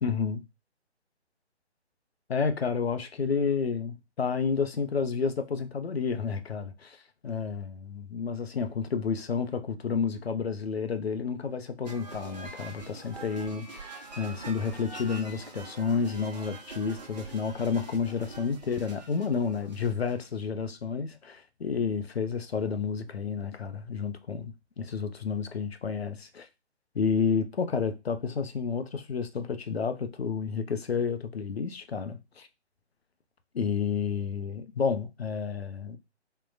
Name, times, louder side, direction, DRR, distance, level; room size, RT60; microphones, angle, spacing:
voice 1, 0.0-0.4 2.3-7.0 7.2-26.5 26.9-32.5 33.5-36.0, left 5 dB, 65° left, 0.5 m, -30 dB
sound 1, 11.8-20.4, right 3 dB, 40° right, 0.7 m, -45 dB
3.6 x 2.2 x 2.5 m
figure-of-eight pair, 140°, 34 cm